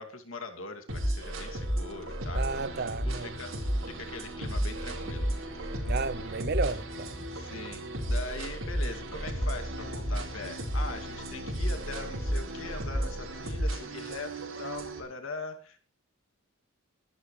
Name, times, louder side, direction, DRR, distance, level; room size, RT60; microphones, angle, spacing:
voice 1, 0.0-5.3 7.3-15.8, left 3 dB, 65° left, 2.6 m, -42 dB
sound 1, 0.9-15.0, right 1 dB, 65° right, 5.0 m, -33 dB
voice 2, 2.3-3.3 5.8-7.2, right 4 dB, 50° right, 0.7 m, -33 dB
sound 2, 2.7-15.0, right 1 dB, 10° left, 6.2 m, -50 dB
22.5 x 12.5 x 3.3 m
head